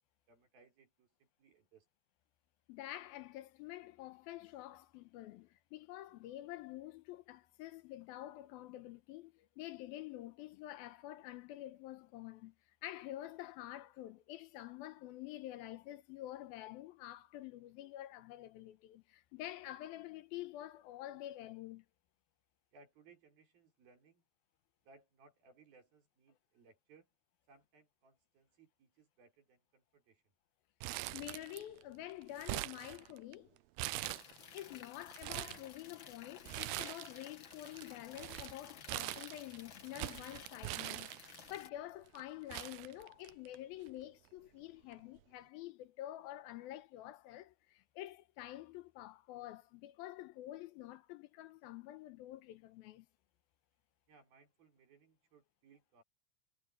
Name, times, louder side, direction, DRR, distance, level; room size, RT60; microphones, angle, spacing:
voice 1, 0.3-1.9 22.7-24.2 24.8-27.1 27.5-30.4 54.1-56.0, right 4 dB, 70° right, 7.1 m, -65 dB
voice 2, 2.7-12.5 12.8-21.9 31.1-33.6 34.5-53.1, left 14 dB, 80° left, 2.6 m, -48 dB
Crumpling crinkling, 30.8-31.8 32.1-33.3 33.8-34.6 35.0-35.6 36.5-37.2 37.5-41.6 42.2-42.3 42.5-43.6 43.9-44.0 44.9-45.2, right 18 dB, 85° right, 2.5 m, -42 dB
sound 1, 34.0-41.7, left 7 dB, 65° left, 1.2 m, -55 dB
omnidirectional pair, 4.4 m